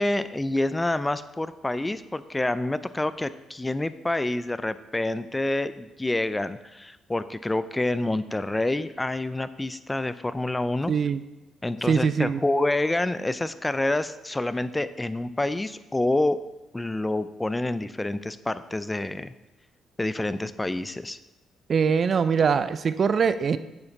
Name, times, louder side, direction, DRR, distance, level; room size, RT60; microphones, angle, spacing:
voice 1, 0.0-10.9 11.6-16.4 16.7-19.3 20.0-21.2, left 2 dB, 15° left, 13 dB, 0.4 m, -27 dB
voice 2, 10.9-11.2 11.9-12.4 21.7-23.6, right 6 dB, 50° right, 13 dB, 0.4 m, -22 dB
7.8 x 5.7 x 4.1 m, 1.0 s
hypercardioid pair, 50°, 0 cm